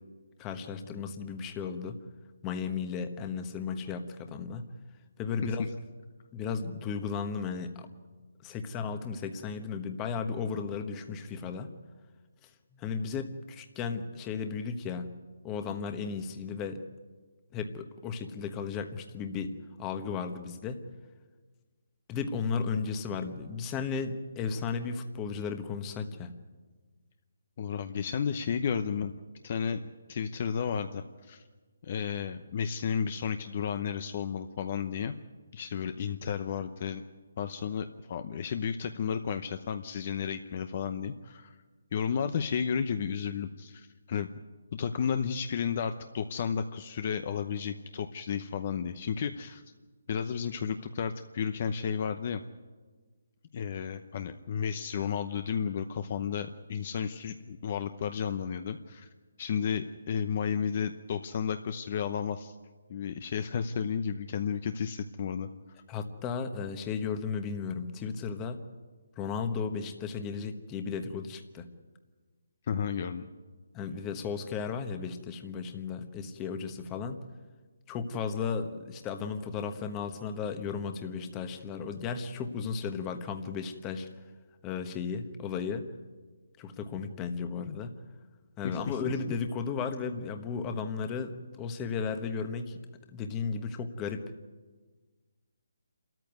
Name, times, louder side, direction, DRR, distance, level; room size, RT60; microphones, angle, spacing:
voice 1, 0.4-2.0 2.4-4.7 5.2-5.6 6.3-7.9 8.4-11.7 12.8-15.1 15.4-16.8 17.5-19.5 19.8-20.8 22.1-26.3 65.9-68.6 69.2-71.7 73.7-77.2 77.9-84.1 84.6-85.9 86.6-87.9 88.6-92.8 93.1-94.2, left 5 dB, 15° left, 7 dB, 1.2 m, -35 dB
voice 2, 27.6-29.1 29.4-29.8 30.1-31.4 31.8-35.1 35.5-37.0 37.4-41.5 41.9-44.3 44.7-49.6 50.1-52.4 53.5-59.1 59.4-62.5 62.9-65.5 72.7-73.3 88.6-89.0, left 7 dB, 35° left, 9 dB, 0.8 m, -32 dB
28.0 x 14.0 x 9.5 m, 1.4 s
hypercardioid pair, 170°, 0 cm